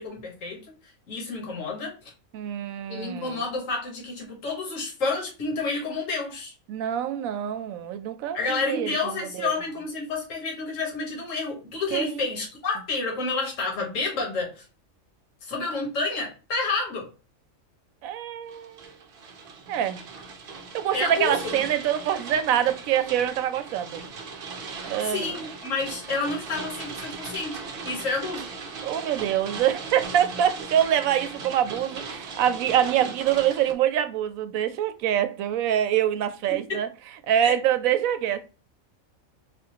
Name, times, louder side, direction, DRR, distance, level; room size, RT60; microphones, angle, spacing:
voice 1, 0.0-2.1 2.9-6.5 8.3-14.6 15.4-17.1 20.9-21.6 24.7-28.5 36.5-36.8 37.4-37.5, left 3 dB, 70° left, 1.6 m, -30 dB
voice 2, 2.3-3.4 6.7-9.5 11.9-12.2 18.0-18.8 19.7-20.0 20.7-24.0 24.8-25.3 28.8-36.9 37.3-38.4, right 10 dB, 80° right, 1.0 m, -25 dB
sound 1, 18.5-33.7, right 4 dB, 55° right, 0.7 m, -38 dB
4.2 x 2.5 x 2.7 m
omnidirectional pair, 1.4 m